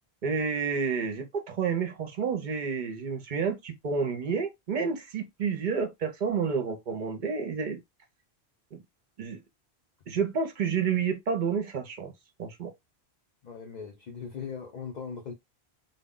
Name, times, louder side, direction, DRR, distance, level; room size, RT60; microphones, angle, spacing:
voice 1, 0.2-7.8 8.7-8.8 9.2-9.4 10.1-12.1 12.4-12.7, right 6 dB, 55° right, 0.6 m, -30 dB
voice 2, 13.4-15.3, left 6 dB, 55° left, 0.5 m, -39 dB
2.1 x 2.0 x 3.6 m
omnidirectional pair, 1.1 m